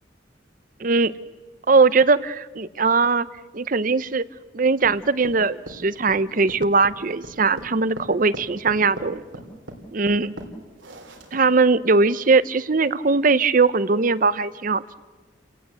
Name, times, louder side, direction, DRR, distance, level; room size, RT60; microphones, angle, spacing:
voice 1, 0.8-1.1 1.7-3.3 3.5-4.2 4.5-9.2 9.9-10.3 11.3-14.8, right 4 dB, 45° right, 17 dB, 0.7 m, -20 dB
sound 1, 4.8-11.6, right 1 dB, 90° right, 3.5 m, -39 dB
29.5 x 18.0 x 8.1 m, 1.4 s
head